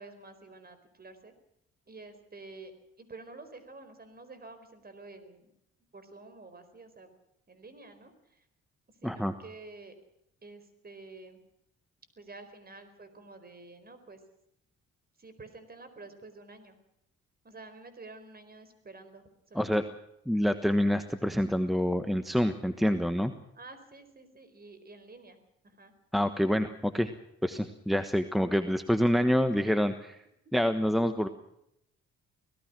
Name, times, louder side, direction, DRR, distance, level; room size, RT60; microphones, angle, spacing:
voice 1, 0.0-1.3 1.9-2.7 3.0-5.5 5.9-7.1 7.5-8.5 9.0-9.9 10.4-11.4 12.2-14.2 15.2-16.8 17.4-19.8 23.5-25.4 25.6-25.9, right 3 dB, 30° right, 11 dB, 4.5 m, -49 dB
voice 2, 9.0-9.3 19.5-19.8 20.3-23.3 26.1-27.1 27.4-30.2 30.5-31.3, equal, ahead, 9 dB, 1.2 m, -27 dB
25.0 x 18.0 x 6.1 m, 0.77 s
cardioid pair, 90°, 30 cm